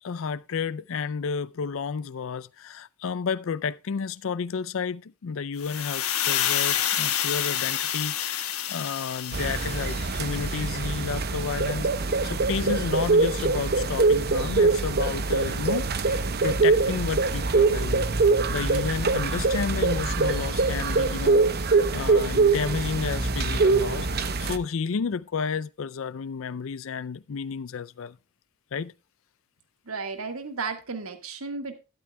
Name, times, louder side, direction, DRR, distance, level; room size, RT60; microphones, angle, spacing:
voice 1, 0.0-18.1 18.5-21.4 21.7-28.2 28.7-28.9, left 5 dB, 65° left, 0.4 m, -31 dB
sound 1, 5.6-10.6, left 10 dB, 80° left, 1.4 m, -28 dB
sound 2, 9.3-24.6, right 3 dB, 45° right, 0.9 m, -24 dB
voice 2, 29.8-31.7, right 4 dB, 80° right, 1.7 m, -33 dB
12.0 x 12.0 x 2.2 m
head